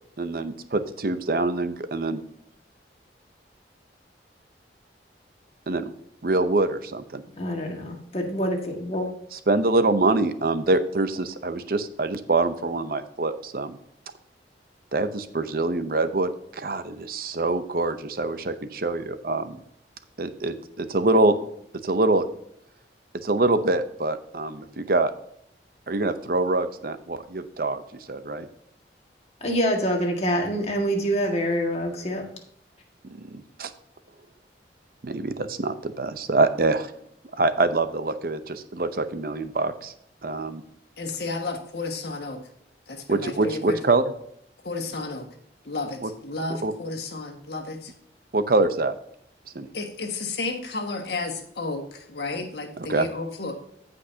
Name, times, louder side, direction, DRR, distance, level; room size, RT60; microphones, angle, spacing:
voice 1, 0.2-2.2 5.7-5.9 6.2-7.2 9.3-13.8 14.9-19.6 20.2-21.4 21.8-22.3 23.1-25.1 25.9-27.8 28.1-28.5 33.1-33.7 35.0-36.9 37.3-39.9 40.2-40.6 43.1-44.1 46.0-46.1 46.6-46.7 48.3-48.9 49.5-49.7 52.9-53.1, right 2 dB, 55° right, 11 dB, 0.7 m, -25 dB
voice 2, 7.4-9.1 29.4-32.2, equal, 35° left, 1 dB, 1.8 m, -26 dB
voice 3, 41.0-42.4 42.9-43.8 44.6-45.3 45.6-47.9 49.7-53.5, left 3 dB, 70° left, 3 dB, 1.6 m, -32 dB
14.5 x 5.3 x 2.7 m, 0.71 s
head